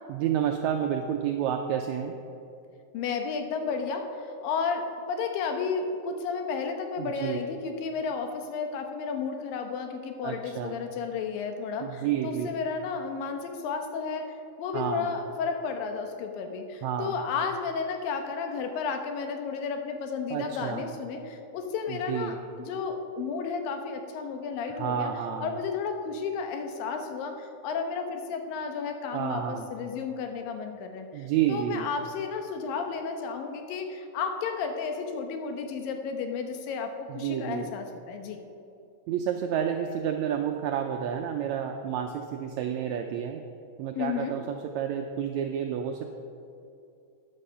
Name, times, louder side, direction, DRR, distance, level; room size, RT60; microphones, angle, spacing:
voice 1, 0.1-2.1 7.0-7.4 10.2-10.7 11.8-12.5 14.7-15.1 16.8-17.1 20.3-20.9 21.9-22.4 24.7-25.5 29.1-29.7 31.1-31.9 37.1-37.7 39.1-43.4 43.8-46.0, right 9 dB, 85° right, 4 dB, 1.6 m, -30 dB
voice 2, 2.9-14.3 14.6-25.1 25.4-38.4 44.0-44.4, left 5 dB, 85° left, 5 dB, 2.8 m, -32 dB
13.0 x 9.8 x 5.6 m, 2.6 s
omnidirectional pair, 3.9 m